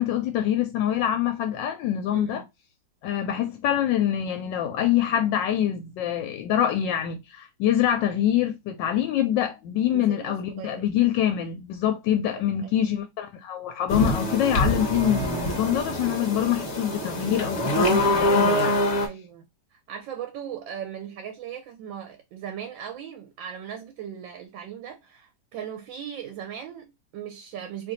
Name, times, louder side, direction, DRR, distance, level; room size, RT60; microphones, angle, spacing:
voice 1, 0.0-2.4 3.0-18.8, left 10 dB, 80° left, 1.2 m, -25 dB
voice 2, 2.1-2.4 9.9-10.9 12.1-12.2 12.6-12.7 19.0-27.9, right 9 dB, 85° right, 1.3 m, -38 dB
sound 1, 13.9-19.1, left 1 dB, 45° left, 1.0 m, -25 dB
3.1 x 2.5 x 3.8 m
omnidirectional pair, 2.0 m